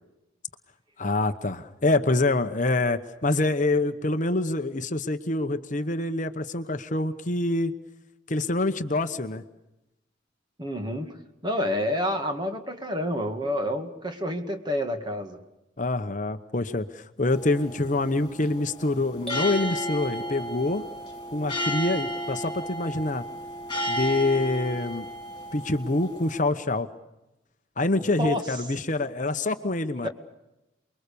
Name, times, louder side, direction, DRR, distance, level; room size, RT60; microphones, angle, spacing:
voice 1, 1.0-7.7 8.3-9.4 15.8-20.8 21.3-23.2 23.9-25.1 25.5-26.9 27.8-30.1, left 2 dB, 40° left, 9 dB, 1.0 m, -26 dB
voice 2, 10.6-15.4 28.2-28.6 30.0-30.1, left 1 dB, 25° right, 5 dB, 2.2 m, -29 dB
sound 1, 17.3-26.4, equal, 20° left, 3.7 m, -33 dB
sound 2, 19.3-21.2, right 2 dB, 5° left, 2.3 m, -41 dB
29.0 x 22.0 x 6.9 m, 0.94 s
head